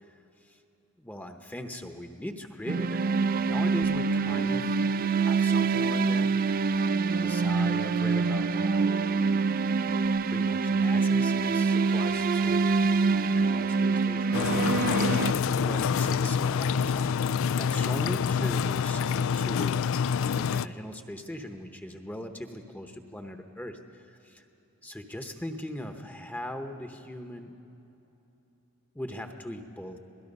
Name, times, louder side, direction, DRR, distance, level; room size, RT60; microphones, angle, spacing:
voice 1, 0.1-0.6 1.0-4.8 5.2-6.3 6.7-6.8 7.1-9.6 10.3-14.6 15.5-19.9 20.4-24.4 24.8-27.6 28.9-30.0, left 1 dB, 10° left, 5 dB, 0.9 m, -40 dB
sound 1, 2.7-15.3, right 4 dB, 40° right, 0.4 m, -25 dB
Bass guitar, 3.8-8.5 8.8-10.1, left 2 dB, 85° right, 2.7 m, -42 dB
sound 2, 14.3-20.7, left 6 dB, 65° left, 0.4 m, -27 dB
27.0 x 18.0 x 5.4 m, 3.0 s
head